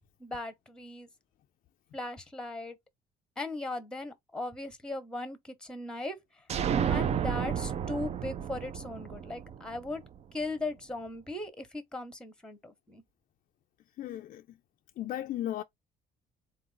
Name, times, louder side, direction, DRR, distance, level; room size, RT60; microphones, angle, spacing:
voice 1, 0.2-1.1 1.9-2.8 3.4-6.2 6.8-10.0 10.3-13.0, left 2 dB, 5° left, 0.9 m, -38 dB
sound 1, 6.5-10.2, right 8 dB, 40° right, 0.4 m, -31 dB
voice 2, 14.0-14.4 15.0-15.6, left 13 dB, 55° left, 0.4 m, -35 dB
3.9 x 2.4 x 3.8 m
cardioid pair, 110°, 17 cm